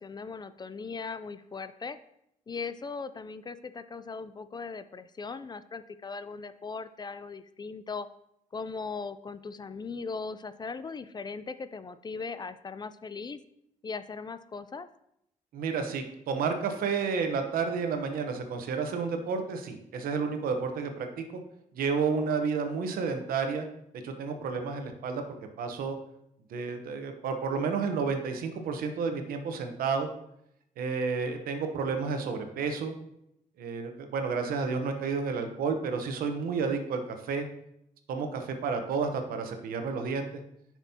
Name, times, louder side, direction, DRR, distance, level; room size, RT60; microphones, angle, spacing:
voice 1, 0.0-2.0 2.5-8.1 8.5-13.4 13.8-14.9, left 4 dB, 30° left, 13 dB, 0.4 m, -39 dB
voice 2, 15.5-21.4 21.7-23.7 24.0-25.2 25.6-26.0 26.5-30.1 30.8-32.9 33.6-37.5 38.1-40.3, right 5 dB, 85° right, 6 dB, 0.9 m, -31 dB
9.1 x 6.0 x 2.8 m, 0.79 s
cardioid pair, 90°, 15 cm